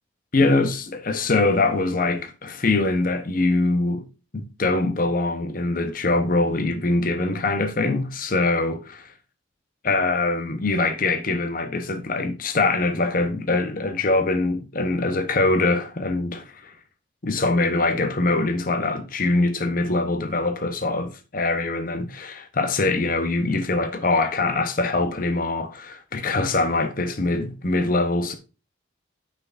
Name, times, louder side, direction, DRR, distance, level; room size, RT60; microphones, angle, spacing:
voice 1, 0.3-4.1 4.3-9.1 9.8-16.7 17.2-28.3, left 2 dB, 45° left, 0.9 m, -23 dB
8.7 x 6.0 x 2.5 m
head